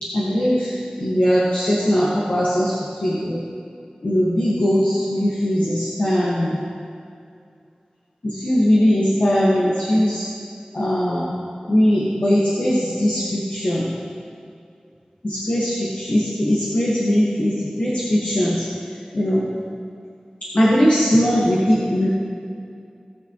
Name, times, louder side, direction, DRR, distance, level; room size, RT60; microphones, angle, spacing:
voice 1, 0.0-2.7 3.0-3.4 4.0-6.6 8.2-10.3 10.7-11.3 11.7-13.9 15.2-18.7 19.1-19.6 20.4-22.1, equal, 55° left, -7 dB, 1.7 m, -20 dB
18.5 x 6.4 x 3.1 m, 2.4 s
wide cardioid pair, 70°, 3 cm